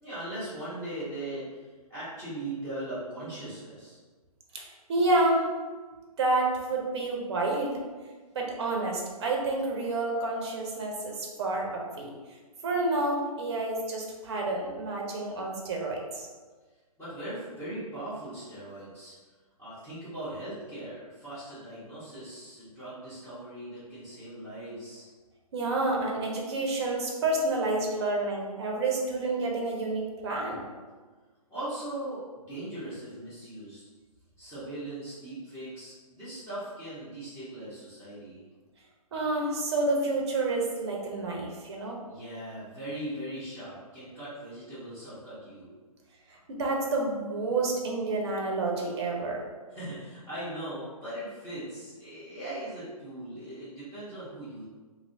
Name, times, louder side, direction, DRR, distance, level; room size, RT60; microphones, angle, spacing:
voice 1, 0.0-1.6 1.9-4.0 17.0-19.1 19.6-25.1 31.5-33.8 34.4-38.4 42.1-45.7 49.7-54.6, right 1 dB, 10° left, -13 dB, 1.1 m, -39 dB
voice 2, 4.5-5.5 6.2-7.8 8.3-12.1 12.6-16.3 25.5-30.6 39.1-42.0 46.5-49.4, right 2 dB, 45° right, -1 dB, 0.7 m, -29 dB
3.0 x 2.8 x 2.7 m, 1.4 s
figure-of-eight pair, 135°, 19 cm